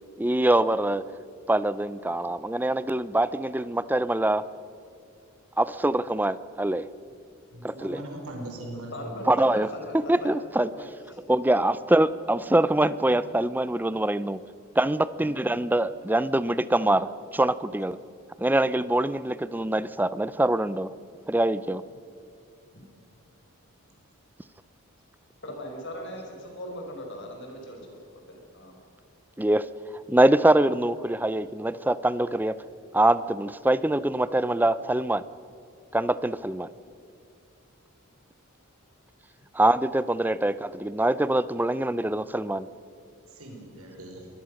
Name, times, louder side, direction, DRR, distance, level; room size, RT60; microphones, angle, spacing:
voice 1, 0.2-1.0 1.5-4.5 5.6-6.9 7.6-8.0 9.3-9.7 9.9-10.7 11.3-14.4 14.8-17.1 17.3-18.0 18.4-20.9 21.3-21.8 29.4-29.7 30.1-32.6 32.9-35.2 35.9-36.7 39.5-42.7, right 1 dB, 10° right, 16 dB, 0.5 m, -24 dB
voice 2, 7.5-9.2 43.3-44.3, right 1 dB, 85° right, 1 dB, 5.1 m, -40 dB
voice 3, 8.9-10.3 10.6-10.9 15.2-15.3 16.8-16.9 22.7-22.8 25.4-28.7, left 1 dB, 55° left, 2 dB, 5.0 m, -39 dB
23.5 x 20.0 x 6.5 m, 2.5 s
head